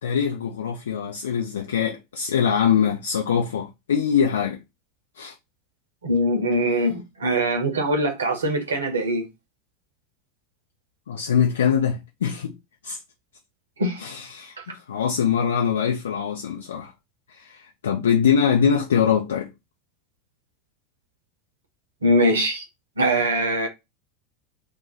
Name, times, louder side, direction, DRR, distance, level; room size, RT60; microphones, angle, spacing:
voice 1, 0.0-4.6 5.2-5.3 11.1-12.5 12.8-13.0 14.0-16.9 17.3-19.5, left 7 dB, 70° left, 0.5 m, -23 dB
voice 2, 6.0-9.3 13.8-14.0 22.0-22.6 23.0-23.7, right 1 dB, 75° right, 1.1 m, -22 dB
2.8 x 2.5 x 3.9 m
figure-of-eight pair, 80°, 0 cm